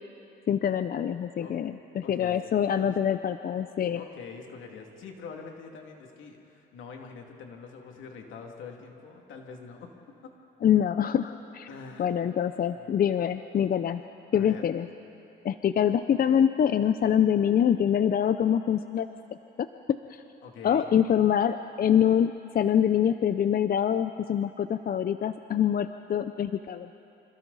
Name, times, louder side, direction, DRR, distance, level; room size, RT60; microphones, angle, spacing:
voice 1, 0.5-4.0 10.6-11.7 12.0-14.0 14.3-14.9 15.4-19.1 19.6-19.7 20.1-20.2 20.6-26.9, left 9 dB, 50° left, 10 dB, 0.6 m, -25 dB
voice 2, 2.0-2.4 2.8-2.9 3.9-9.9 11.7-12.2 12.8-12.9 14.3-14.7 20.4-20.9, left 5 dB, 80° left, 2 dB, 2.5 m, -44 dB
26.5 x 26.5 x 4.1 m, 2.9 s
cardioid pair, 90°, 20 cm